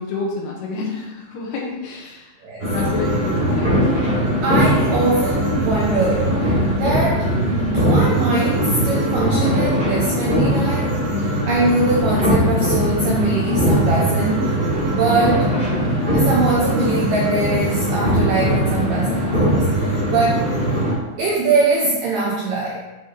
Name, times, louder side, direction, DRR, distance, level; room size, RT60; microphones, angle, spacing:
voice 1, 0.0-2.3 2.7-3.8, left 3 dB, 75° left, -2 dB, 2.8 m, -28 dB
sound 1, 2.6-20.9, equal, 25° right, 1.2 m, -20 dB
voice 2, 4.4-6.5 6.8-7.3 7.6-10.9 11.2-14.6 14.8-15.5 16.1-20.5 21.2-22.8, right 3 dB, 80° right, -3 dB, 1.9 m, -22 dB
9.1 x 5.1 x 3.1 m, 1.1 s
omnidirectional pair, 5.1 m